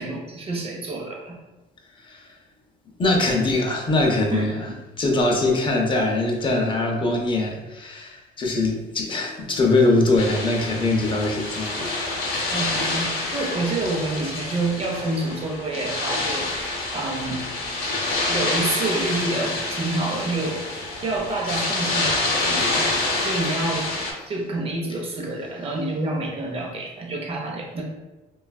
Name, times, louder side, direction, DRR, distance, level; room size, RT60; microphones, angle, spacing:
voice 1, 0.0-1.4 4.3-4.8 12.5-17.5 18.3-20.6 21.0-22.9 23.2-23.9 24.3-27.8, right 2 dB, 35° right, 0 dB, 0.6 m, -28 dB
voice 2, 3.0-4.7 5.0-11.9 23.2-23.3, left 2 dB, 30° left, 1 dB, 0.5 m, -22 dB
sound 1, 10.2-24.1, left 2 dB, 60° left, 0.8 m, -27 dB
3.2 x 2.3 x 2.3 m, 1.1 s
cardioid pair, 110°, 17 cm